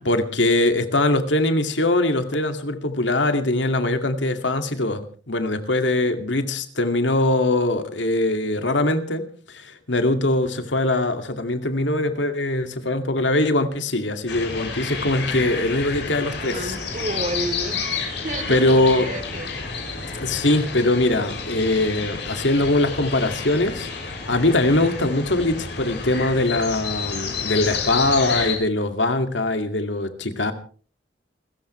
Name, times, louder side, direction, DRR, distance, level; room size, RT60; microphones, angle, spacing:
voice 1, 0.0-5.0 5.3-16.8 18.5-19.1 20.2-23.9 24.3-30.5, left 2 dB, 90° left, 7 dB, 2.3 m, -22 dB
sound 1, 14.3-28.5, left 5 dB, 70° left, 6.8 m, -30 dB
voice 2, 16.4-17.9 18.2-19.5, right 1 dB, 45° right, 8 dB, 3.4 m, -30 dB
29.0 x 14.5 x 3.3 m, 0.40 s
head